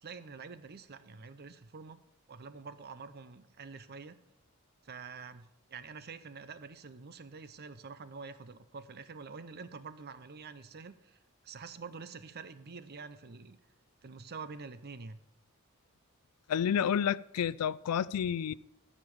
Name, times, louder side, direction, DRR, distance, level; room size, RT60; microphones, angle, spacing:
voice 1, 0.0-2.0 2.3-4.2 4.8-11.2 11.4-13.6 14.0-15.2, right 5 dB, 45° right, 0.7 m, -47 dB
voice 2, 16.5-18.5, left 8 dB, 90° left, 0.4 m, -30 dB
13.0 x 5.3 x 7.0 m
head